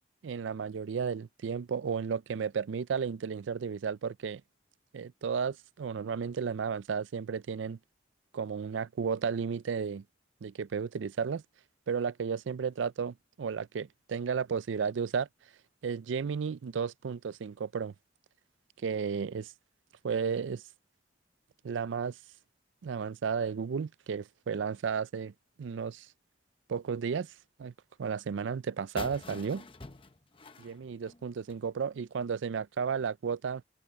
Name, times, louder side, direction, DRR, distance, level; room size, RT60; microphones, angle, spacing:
voice 1, 0.2-4.4 4.9-7.8 8.3-10.0 10.4-11.4 11.9-15.3 15.8-17.9 18.8-19.5 20.0-20.6 21.6-22.2 22.8-25.3 25.6-26.1 26.7-27.3 27.6-27.7 28.0-29.6 30.6-33.6, right 6 dB, 85° right, 0.4 m, -33 dB
sound 1, 29.0-31.7, left 3 dB, 30° left, 0.8 m, -46 dB
head